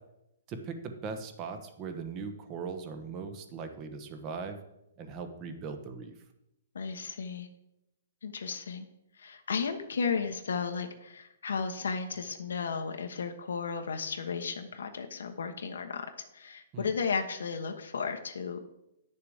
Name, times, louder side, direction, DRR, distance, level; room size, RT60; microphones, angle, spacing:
voice 1, 0.5-4.6 5.0-6.1 16.7-16.9, right 5 dB, 25° right, 7 dB, 1.0 m, -39 dB
voice 2, 6.7-7.5 8.2-8.9 9.2-16.1 16.3-18.6, left 5 dB, 85° left, 5 dB, 1.2 m, -34 dB
9.7 x 6.8 x 5.0 m, 0.85 s
hypercardioid pair, 155°, 0 cm